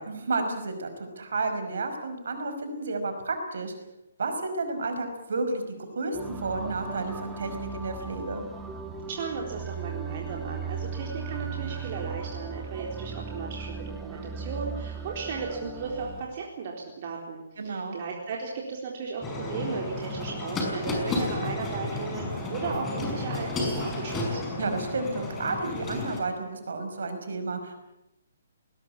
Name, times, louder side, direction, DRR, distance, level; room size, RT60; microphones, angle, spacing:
voice 1, 0.0-3.7 4.2-8.4 17.6-18.0 24.6-27.8, right 3 dB, 65° right, 6 dB, 5.4 m, -31 dB
sound 1, 6.1-16.2, right 5 dB, 10° right, 2.9 m, -37 dB
voice 2, 9.1-24.4, right 5 dB, 45° right, 0 dB, 4.0 m, -35 dB
sound 2, 19.2-26.2, left 2 dB, 15° left, 5.8 m, -32 dB
20.5 x 20.0 x 8.8 m, 0.89 s
figure-of-eight pair, 135°, 0 cm